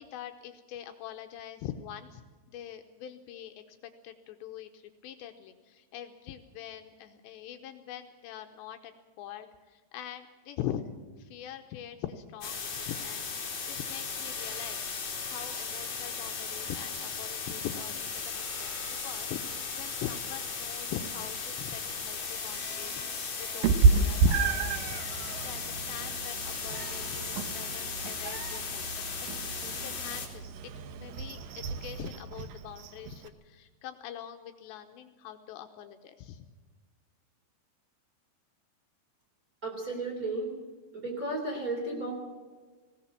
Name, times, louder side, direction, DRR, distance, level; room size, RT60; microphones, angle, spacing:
voice 1, 0.0-2.2 2.5-10.8 11.2-18.7 19.0-29.1 29.5-36.4, left 10 dB, 80° left, 6 dB, 2.9 m, -43 dB
sound 1, 12.4-30.3, left 5 dB, 40° left, 4.2 m, -37 dB
Meow, 23.6-33.3, right 4 dB, 85° right, 1.9 m, -30 dB
voice 2, 39.6-40.5 40.9-42.1, right 2 dB, 20° right, -1 dB, 3.2 m, -33 dB
20.0 x 17.5 x 7.5 m, 1.4 s
omnidirectional pair, 5.5 m